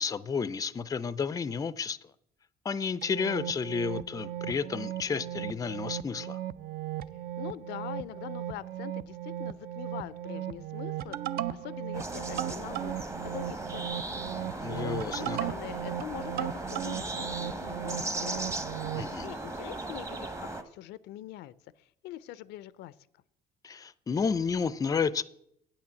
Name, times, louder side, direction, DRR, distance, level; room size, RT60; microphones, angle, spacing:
voice 1, 0.0-2.0 2.6-6.4 14.5-15.4 19.0-19.3 23.6-25.2, left 5 dB, 20° left, 0.4 m, -31 dB
sound 1, 3.0-19.1, right 12 dB, 65° right, 0.5 m, -37 dB
voice 2, 7.4-11.2 11.5-14.2 14.4-18.4 18.7-22.9, left 14 dB, 85° left, 0.4 m, -43 dB
sound 2, 11.9-20.6, right 2 dB, 15° right, 0.9 m, -37 dB
8.5 x 5.9 x 7.5 m
cardioid pair, 110°, 17 cm